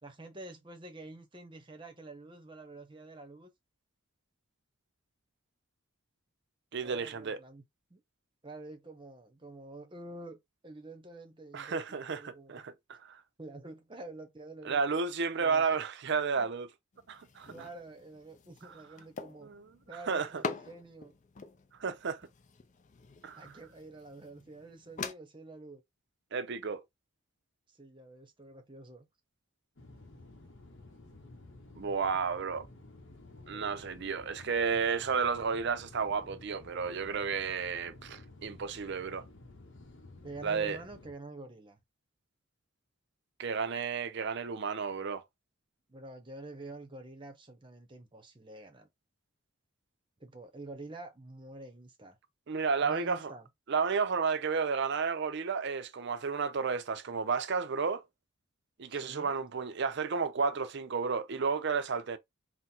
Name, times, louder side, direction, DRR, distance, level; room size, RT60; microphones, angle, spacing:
voice 1, 0.0-3.5 6.8-8.0 8.4-12.6 13.4-14.8 15.4-15.8 16.3-16.5 17.5-19.5 19.9-21.2 23.4-25.8 27.7-29.1 33.5-33.7 40.2-41.8 45.9-48.9 50.2-52.2 52.8-53.5 58.9-59.4, right 2 dB, 25° right, 0.8 m, -48 dB
voice 2, 6.7-7.4 11.5-13.2 14.6-16.7 17.1-17.5 19.4-19.7 20.1-20.4 21.8-22.2 23.2-23.5 26.3-26.8 31.7-32.7 33.5-39.3 40.4-40.8 43.4-45.2 52.5-53.3 53.7-58.0 58.8-62.2, right 5 dB, 55° right, 0.5 m, -32 dB
sound 1, 16.9-25.1, left 4 dB, 35° left, 0.4 m, -45 dB
sound 2, 29.8-41.1, left 2 dB, 60° left, 1.0 m, -53 dB
3.8 x 2.1 x 4.3 m
head